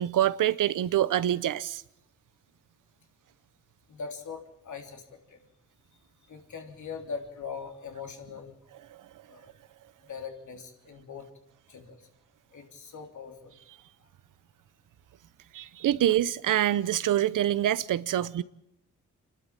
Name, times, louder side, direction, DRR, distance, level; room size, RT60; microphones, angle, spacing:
voice 1, 0.0-1.8 15.5-18.4, right 12 dB, 85° right, 0.8 m, -25 dB
voice 2, 3.9-5.4 6.3-8.6 9.3-9.5 10.0-11.3 11.7-12.0 12.5-13.5 18.2-18.3, left 5 dB, 70° left, 3.5 m, -41 dB
27.0 x 12.0 x 8.9 m
cardioid pair, 70°, 31 cm